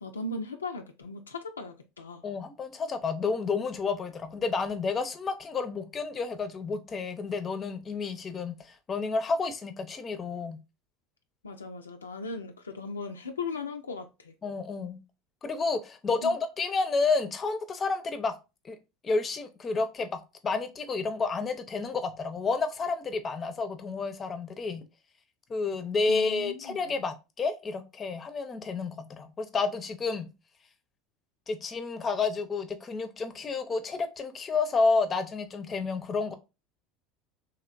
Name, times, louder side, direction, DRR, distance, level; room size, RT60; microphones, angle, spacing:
voice 1, 0.0-2.3 11.4-14.3 16.2-16.3 26.1-27.0, left 3 dB, 80° left, 0.3 m, -38 dB
voice 2, 2.2-10.6 14.4-15.0 15.4-18.3 18.6-18.8 19.0-24.8 25.5-30.3 31.5-36.3, left 4 dB, 30° left, 0.5 m, -30 dB
3.0 x 2.9 x 2.4 m
figure-of-eight pair, 70°, 0 cm